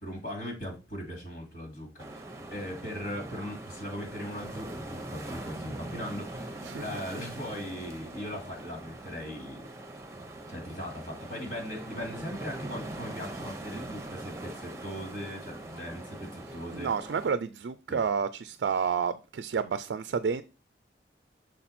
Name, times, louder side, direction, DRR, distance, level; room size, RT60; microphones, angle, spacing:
voice 1, 0.0-2.2 2.5-9.7 10.5-16.9 17.9-18.0, equal, 60° left, 2.6 m, -39 dB
sound 1, 2.0-17.3, right 1 dB, 15° right, 0.9 m, -42 dB
voice 2, 16.7-20.4, right 6 dB, 70° right, 0.4 m, -30 dB
6.4 x 4.2 x 4.2 m
head